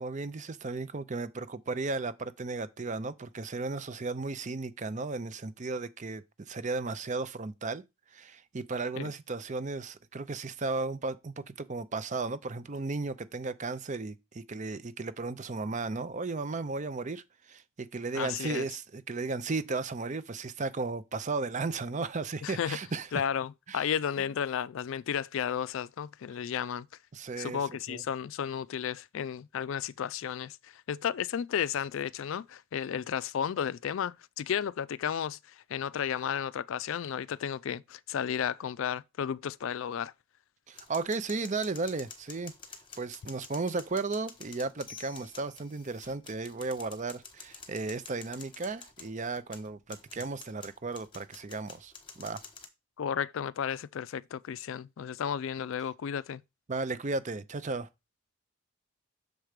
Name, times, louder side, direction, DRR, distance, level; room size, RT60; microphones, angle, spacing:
voice 1, 0.0-7.8 8.1-23.1 23.7-23.8 27.1-27.6 27.9-28.0 40.7-42.5 43.0-51.9 52.2-52.4 56.7-57.9, right 3 dB, 35° right, 0.5 m, -35 dB
voice 2, 18.1-18.7 22.4-22.8 23.1-26.9 27.4-40.1 53.0-56.4, left 8 dB, 65° left, 0.3 m, -33 dB
sound 1, 40.7-52.7, left 5 dB, 25° left, 1.1 m, -49 dB
6.6 x 4.6 x 5.0 m
head